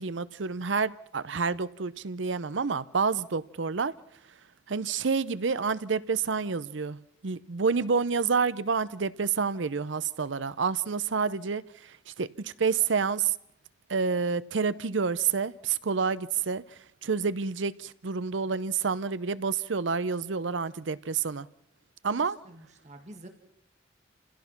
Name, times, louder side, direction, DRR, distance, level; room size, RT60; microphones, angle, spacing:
voice 1, 0.0-3.9 4.7-13.3 13.9-16.6 17.0-21.5 22.0-22.4, right 5 dB, 85° right, 0.7 m, -28 dB
voice 2, 22.1-23.3, right 1 dB, 40° right, 2.2 m, -49 dB
29.0 x 16.5 x 5.9 m
head